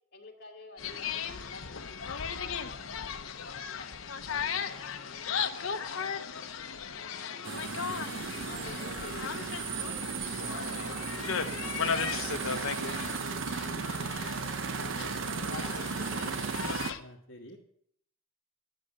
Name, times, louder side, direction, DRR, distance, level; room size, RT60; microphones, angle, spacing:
voice 1, 0.1-4.0 4.7-14.5 15.0-16.5, left 2 dB, 50° left, 0 dB, 2.5 m, -50 dB
sound 1, 0.8-17.0, left 6 dB, 80° left, 0.8 m, -36 dB
voice 2, 4.3-4.6 8.4-8.8 14.7-15.3 16.9-17.6, left 1 dB, 65° left, -3 dB, 1.6 m, -50 dB
sound 2, 7.4-16.9, right 5 dB, 70° right, 0.6 m, -35 dB
11.5 x 6.9 x 8.6 m, 0.68 s
head